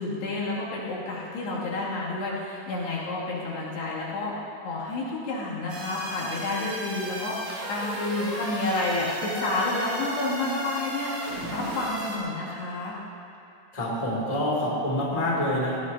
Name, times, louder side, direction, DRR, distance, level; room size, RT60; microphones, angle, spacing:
voice 1, 0.0-13.0, left 2 dB, 75° left, -7 dB, 4.7 m, -30 dB
sound 1, 5.7-12.2, right 1 dB, 45° right, 3.6 m, -35 dB
voice 2, 13.7-15.8, left 1 dB, 10° left, -6 dB, 2.4 m, -26 dB
18.5 x 17.0 x 2.9 m, 2.7 s
omnidirectional pair, 4.8 m